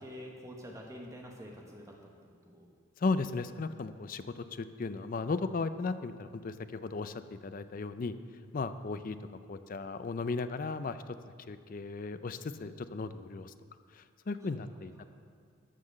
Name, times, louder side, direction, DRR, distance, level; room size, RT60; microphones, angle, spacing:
voice 1, 0.0-2.0 2.4-2.7 14.5-14.6 15.0-15.1, equal, 15° right, 0 dB, 1.0 m, -47 dB
voice 2, 3.0-7.1 7.4-8.2 8.5-9.2 9.5-11.0 11.5-13.5 13.9-15.0, left 3 dB, 40° left, 11 dB, 0.4 m, -36 dB
14.0 x 5.9 x 6.4 m, 2.1 s
head